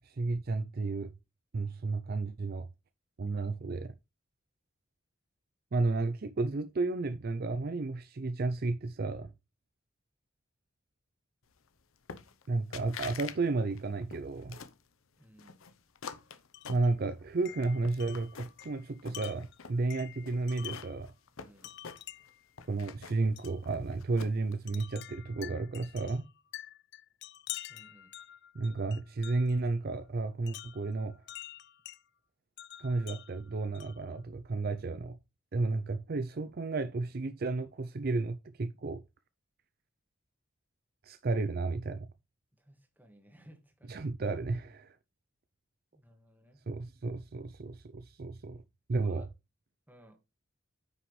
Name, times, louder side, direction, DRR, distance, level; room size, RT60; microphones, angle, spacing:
voice 1, 0.0-1.1 1.5-2.7 3.2-3.9 5.7-9.3 12.5-14.6 16.7-21.1 22.7-26.3 28.5-31.2 32.8-35.2 35.5-39.0 41.0-42.1 43.9-45.0 46.7-48.6 48.9-49.3, right 3 dB, 50° right, 0.5 m, -32 dB
sound 1, 12.1-12.5 12.7-13.4 13.7-14.8 15.4-17.3 17.6-18.7 19.0-19.8 20.3-22.3 22.6-24.5, left 6 dB, 90° left, 0.7 m, -46 dB
voice 2, 15.2-15.6 21.4-21.7 27.7-28.1 42.6-44.0 45.9-46.6 48.9-49.3 49.9-50.2, equal, 10° right, 1.7 m, -58 dB
Wind chime, 16.5-16.9 17.5-21.0 21.6-22.5 23.4-23.6 24.7-29.6 30.5-32.0 32.6-34.1, left 14 dB, 55° left, 0.3 m, -47 dB
9.5 x 6.0 x 3.2 m
head